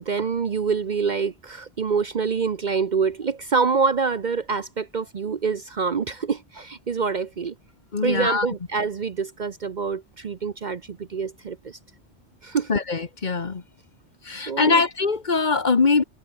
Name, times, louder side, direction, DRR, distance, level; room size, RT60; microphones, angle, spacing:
voice 1, 0.0-7.5 8.0-11.8 12.4-12.7 14.4-14.8, right 5 dB, 45° right, 0.8 m, -26 dB
voice 2, 7.9-8.5 12.7-13.6 14.3-16.0, left 4 dB, 40° left, 1.3 m, -22 dB
omnidirectional pair, 1.2 m